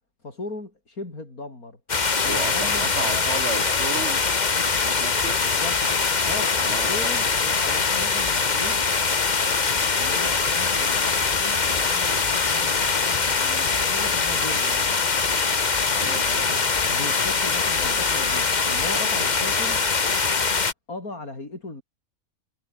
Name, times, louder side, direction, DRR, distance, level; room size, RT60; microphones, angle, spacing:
voice 1, 0.2-1.8 2.2-3.4 5.4-6.6 6.9-8.8 9.4-15.2 16.0-19.8 20.9-21.8, left 2 dB, 85° left, 5.9 m, -38 dB
sound 1, 1.9-20.7, left 4 dB, 35° left, 1.3 m, -23 dB
voice 2, 2.2-4.2 4.8-5.4 6.6-7.2 15.9-16.5, right 4 dB, 50° right, 2.3 m, -34 dB
sound 2, 4.9-5.0 5.3-5.7 6.0-7.4 7.7-8.0 8.4-14.1 14.5-14.8 15.1-16.0 16.4-17.6 17.8-18.5 18.7-18.9 19.2-20.1, equal, 5° right, 6.9 m, -47 dB
omnidirectional pair, 1.5 m